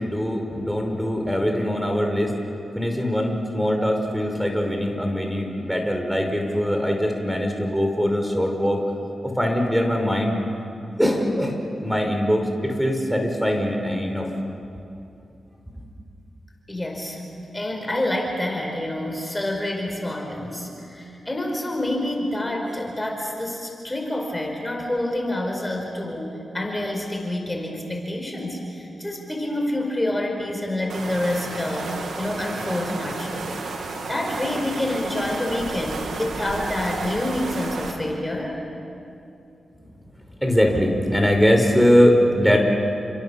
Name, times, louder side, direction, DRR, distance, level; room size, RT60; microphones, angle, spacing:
voice 1, 0.0-2.4 2.8-8.8 9.2-10.5 11.0-14.3 15.7-15.9 40.4-42.6, equal, 5° right, 3 dB, 5.5 m, -22 dB
voice 2, 16.7-38.6, left 1 dB, 20° left, 2 dB, 5.0 m, -28 dB
sound 1, 30.9-37.9, right 3 dB, 80° right, 3.0 m, -32 dB
30.0 x 26.0 x 7.3 m, 2.6 s
supercardioid pair, 45°, 0 cm